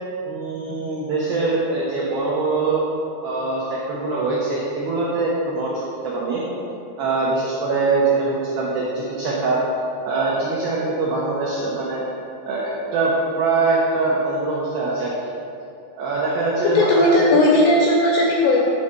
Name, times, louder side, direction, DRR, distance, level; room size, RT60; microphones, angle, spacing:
voice 1, 0.2-2.8 3.2-6.4 7.0-9.6 10.0-12.0 12.5-15.1 16.0-17.3, right 3 dB, 85° right, -6 dB, 2.1 m, -23 dB
voice 2, 16.7-18.6, left 1 dB, 80° left, -3 dB, 2.4 m, -16 dB
9.1 x 3.6 x 6.6 m, 2.6 s
omnidirectional pair, 5.7 m